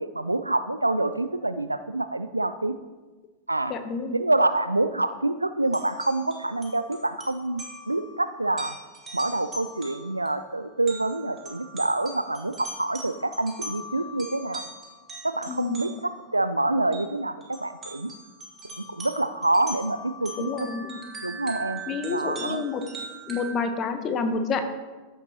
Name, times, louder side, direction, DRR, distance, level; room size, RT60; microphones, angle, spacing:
voice 1, 0.0-2.8 3.5-3.7 4.1-8.7 9.1-14.7 15.2-18.1 18.9-20.7 21.2-21.8 22.1-22.6, right 2 dB, 85° right, 12 dB, 0.3 m, -27 dB
voice 2, 3.7-4.2 15.5-15.8 20.3-21.0 21.9-22.8 23.3-24.6, left 5 dB, 30° left, 7 dB, 1.0 m, -29 dB
sound 1, 5.6-16.2 16.9-17.0 17.4-23.5, right 1 dB, 20° right, 2.0 m, -41 dB
14.5 x 6.7 x 2.9 m, 1.2 s
figure-of-eight pair, 90°, 0 cm